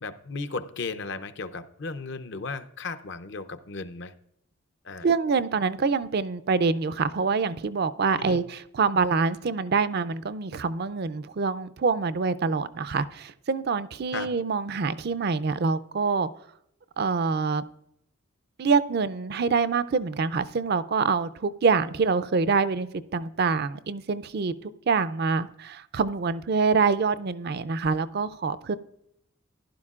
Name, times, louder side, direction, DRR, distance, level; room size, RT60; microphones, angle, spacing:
voice 1, 0.0-4.1 4.8-5.1 8.2-8.4 14.1-14.3, left 4 dB, 55° left, 11 dB, 0.6 m, -35 dB
voice 2, 5.0-16.3 17.0-17.6 18.6-28.8, right 4 dB, 50° right, 14 dB, 0.4 m, -25 dB
15.0 x 11.5 x 2.4 m, 0.76 s
head